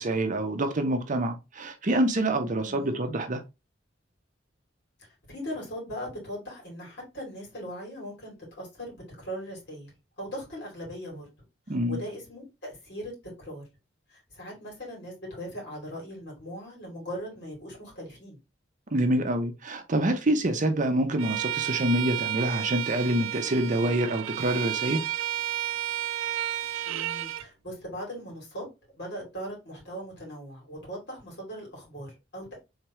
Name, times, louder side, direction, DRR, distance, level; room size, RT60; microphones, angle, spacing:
voice 1, 0.0-3.4 11.7-12.0 18.9-25.0, right 1 dB, 40° right, 0.7 m, -26 dB
voice 2, 2.6-3.0 5.3-9.9 10.2-11.3 11.9-13.1 13.4-13.6 14.1-18.4 26.8-28.7 29.0-32.6, equal, 60° left, 2.7 m, -39 dB
Bowed string instrument, 21.2-27.5, right 12 dB, 90° right, 0.3 m, -32 dB
3.6 x 3.5 x 3.0 m
head